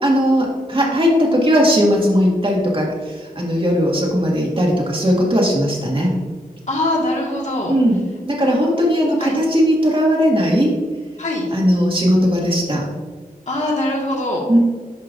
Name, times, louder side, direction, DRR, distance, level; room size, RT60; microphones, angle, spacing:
voice 1, 0.0-6.1 7.7-8.0 8.3-10.8 11.5-12.8 14.5-14.6, equal, 35° right, -2 dB, 1.9 m, -17 dB
voice 2, 6.7-7.7 8.4-8.7 9.2-9.3 11.2-11.5 13.5-14.4, left 1 dB, 50° left, -2 dB, 1.7 m, -22 dB
10.5 x 5.4 x 2.6 m, 1.5 s
wide cardioid pair, 80°, 15 cm